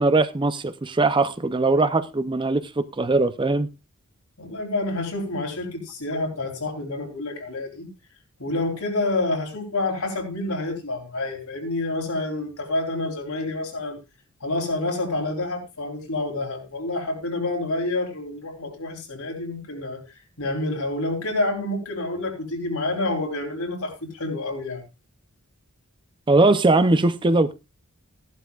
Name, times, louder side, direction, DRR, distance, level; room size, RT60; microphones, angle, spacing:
voice 1, 0.0-3.7 26.3-27.5, right 2 dB, 20° right, 0.5 m, -20 dB
voice 2, 4.4-7.9 8.4-14.0 14.4-20.0 20.4-24.8, left 2 dB, 80° left, 3.8 m, -28 dB
15.0 x 11.5 x 2.4 m
head